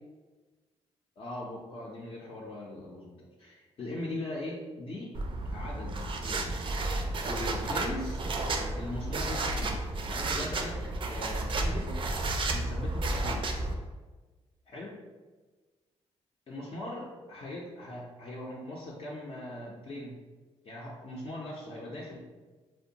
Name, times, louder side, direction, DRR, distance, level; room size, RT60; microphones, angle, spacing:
voice 1, 1.2-3.1 3.4-5.1 5.5-6.4 7.3-8.2 8.7-12.2 12.5-13.8 14.7-14.9 16.5-20.1 20.6-22.2, left 1 dB, 55° left, -5 dB, 0.5 m, -40 dB
sound 1, 5.2-13.8, right 2 dB, 45° right, 0.3 m, -32 dB
2.5 x 2.1 x 2.7 m, 1.3 s
cardioid pair, 75°, 12 cm